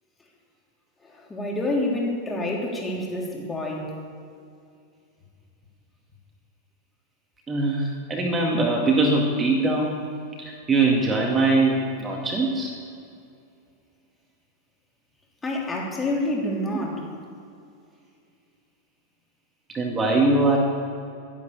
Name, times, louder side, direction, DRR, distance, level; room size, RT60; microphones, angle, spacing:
voice 1, 1.0-3.9 15.4-17.1, left 1 dB, 15° left, -2 dB, 3.3 m, -28 dB
voice 2, 7.5-10.0 10.4-12.7 19.7-20.6, right 2 dB, 20° right, 0 dB, 2.0 m, -22 dB
12.5 x 11.0 x 7.0 m, 2.4 s
figure-of-eight pair, 90°, 0 cm